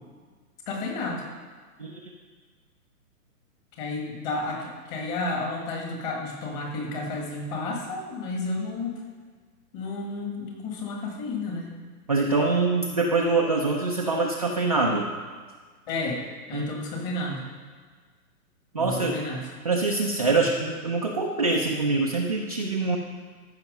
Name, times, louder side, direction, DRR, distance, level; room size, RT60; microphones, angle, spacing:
voice 1, 0.7-1.2 3.8-9.0 9.7-11.8 15.9-16.2 16.5-17.4 18.8-19.5 20.3-20.5, left 2 dB, 25° left, 1 dB, 1.8 m, -31 dB
voice 2, 12.1-15.1 16.5-16.7 18.7-19.2 19.6-23.0, right 3 dB, 25° right, -2 dB, 0.4 m, -24 dB
14.0 x 5.8 x 5.3 m, 1.5 s
hypercardioid pair, 155°, 46 cm